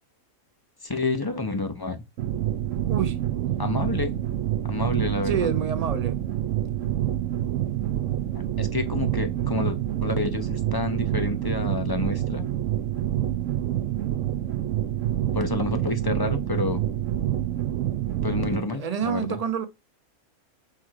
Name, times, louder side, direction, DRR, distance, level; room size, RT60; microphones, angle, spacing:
voice 1, 0.8-2.0 3.6-4.2 4.6-5.5 8.3-12.5 15.3-16.8 18.2-19.2, left 2 dB, 20° left, 0.7 m, -29 dB
sound 1, 2.2-18.6, right 12 dB, 65° right, 1.0 m, -27 dB
voice 2, 2.9-3.2 5.2-6.2 18.4-19.6, right 7 dB, 35° right, 0.7 m, -28 dB
6.1 x 4.5 x 4.8 m
omnidirectional pair, 1.5 m